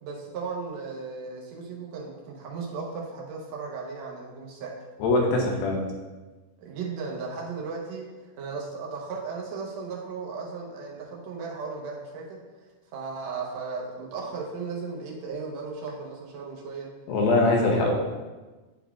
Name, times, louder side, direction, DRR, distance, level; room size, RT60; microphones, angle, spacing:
voice 1, 0.0-4.8 6.6-8.1 8.4-12.4 12.9-16.9 17.6-17.9, right 4 dB, 70° right, -2 dB, 1.7 m, -36 dB
voice 2, 5.0-5.9 17.1-17.9, left 2 dB, 90° left, -1 dB, 2.8 m, -22 dB
10.5 x 4.0 x 2.3 m, 1.2 s
omnidirectional pair, 4.1 m